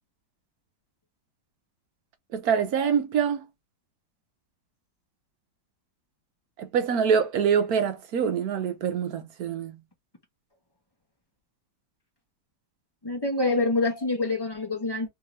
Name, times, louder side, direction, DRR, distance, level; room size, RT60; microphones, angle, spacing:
voice 1, 2.3-3.5 6.6-9.8, right 7 dB, 65° right, 1.1 m, -25 dB
voice 2, 13.0-15.1, left 2 dB, 30° left, 0.4 m, -26 dB
3.5 x 2.6 x 3.1 m
omnidirectional pair, 1.9 m